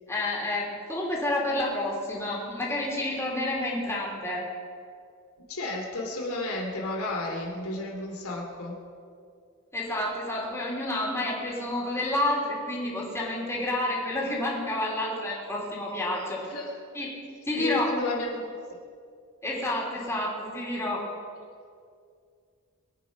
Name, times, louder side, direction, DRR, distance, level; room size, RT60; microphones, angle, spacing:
voice 1, 0.1-4.4 9.7-16.4 16.9-17.1 17.5-17.9 19.4-21.0, left 1 dB, 15° left, -4 dB, 3.6 m, -29 dB
voice 2, 5.4-8.8 16.2-16.7 17.6-18.8, left 2 dB, 80° left, 0 dB, 2.7 m, -33 dB
22.5 x 9.1 x 6.1 m, 2.3 s
head